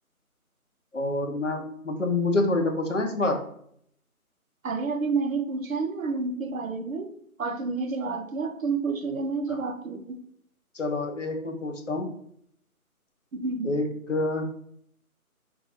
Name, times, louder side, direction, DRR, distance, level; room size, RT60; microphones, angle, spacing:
voice 1, 0.9-3.4 10.7-12.1 13.6-14.5, left 2 dB, 55° left, 4 dB, 0.6 m, -27 dB
voice 2, 4.6-7.1 7.4-10.2 13.3-13.7, right 4 dB, 65° right, 7 dB, 0.6 m, -29 dB
2.5 x 2.3 x 4.0 m, 0.68 s
figure-of-eight pair, 180°, 44 cm